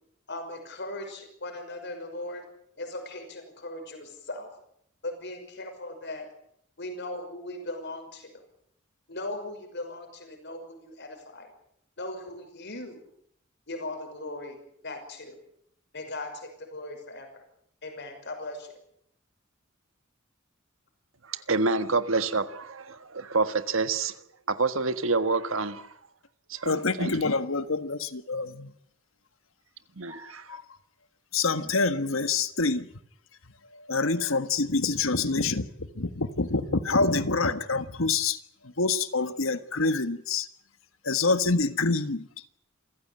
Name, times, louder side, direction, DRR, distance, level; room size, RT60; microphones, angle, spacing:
voice 1, 0.3-2.4 2.8-4.5 5.0-6.3 6.8-8.3 9.1-11.5 12.0-13.0 13.7-14.6 14.8-15.4 15.9-17.4 17.8-18.7, left 2 dB, 60° left, 5 dB, 5.9 m, -38 dB
voice 2, 21.3-24.2 24.5-25.9 26.5-27.3 30.0-30.5, right 3 dB, 70° right, 11 dB, 1.6 m, -28 dB
voice 3, 26.6-28.7 30.2-30.6 31.3-32.9 33.7-35.7 35.9-38.4 38.8-40.5 41.0-42.3, left 3 dB, 75° left, 12 dB, 1.5 m, -26 dB
27.5 x 15.5 x 8.9 m, 0.71 s
head